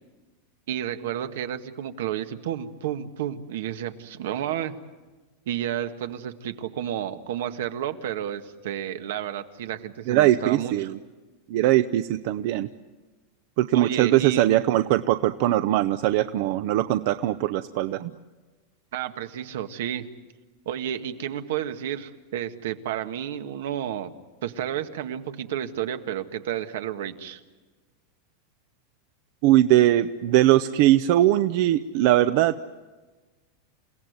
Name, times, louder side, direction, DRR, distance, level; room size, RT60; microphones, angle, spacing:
voice 1, 0.7-4.8 5.5-10.9 13.7-14.5 18.9-20.1 20.7-24.1 24.4-27.4, right 10 dB, 75° right, 8 dB, 1.7 m, -31 dB
voice 2, 10.1-11.0 11.5-12.7 13.6-18.1 29.4-32.5, right 14 dB, 50° right, 12 dB, 0.7 m, -21 dB
29.0 x 17.0 x 9.5 m, 1.3 s
supercardioid pair, 155°, 0 cm